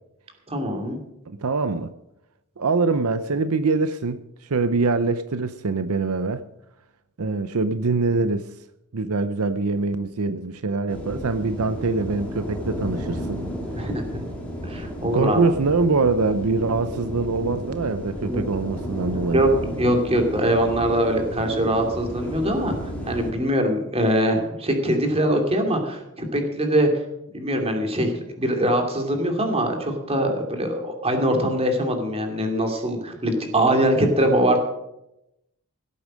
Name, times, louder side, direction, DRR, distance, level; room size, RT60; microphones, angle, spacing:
voice 1, 0.5-1.0 13.7-14.2 14.6-15.4 18.3-18.4 19.3-19.5 19.8-22.7 23.1-26.9 27.3-34.6, right 1 dB, 25° right, 4 dB, 2.6 m, -22 dB
voice 2, 1.3-1.9 2.6-6.4 7.2-8.5 8.9-13.4 15.1-19.4, right 3 dB, 75° right, 11 dB, 0.7 m, -24 dB
sound 1, 10.9-23.3, equal, 5° left, 3.4 m, -33 dB
17.0 x 8.7 x 6.4 m, 0.86 s
head